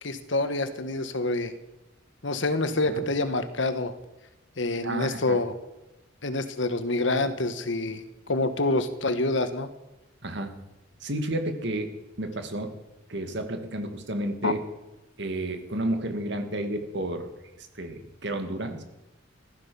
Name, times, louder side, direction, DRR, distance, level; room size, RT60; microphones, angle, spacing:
voice 1, 0.0-1.5 2.2-3.9 4.6-5.5 6.2-9.7 14.4-14.5, left 2 dB, 65° left, 10 dB, 1.4 m, -27 dB
voice 2, 4.8-5.4 10.2-10.5 11.0-11.9 12.2-12.7 13.1-14.6 15.2-17.3 17.6-18.8, right 1 dB, 60° right, 7 dB, 2.3 m, -31 dB
15.5 x 13.0 x 7.0 m, 0.97 s
head